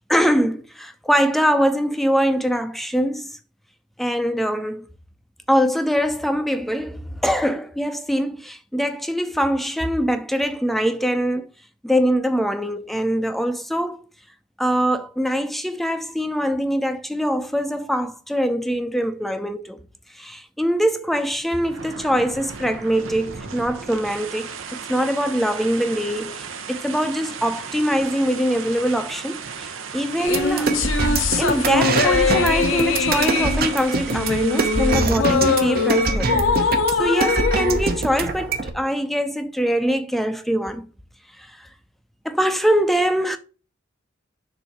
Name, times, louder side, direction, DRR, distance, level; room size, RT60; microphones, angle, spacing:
voice 1, 0.1-3.4 4.0-4.8 5.5-11.5 11.8-14.0 14.6-19.8 20.1-30.7 31.4-36.4 37.0-40.9 42.2-43.4, equal, ahead, 0.5 m, -23 dB
sound 1, 21.1-35.0, right 6 dB, 80° right, 0.9 m, -35 dB
sound 2, 30.2-38.8, left 5 dB, 75° left, 0.8 m, -23 dB
sound 3, 30.3-38.7, right 3 dB, 50° right, 0.8 m, -24 dB
6.9 x 2.7 x 5.8 m
head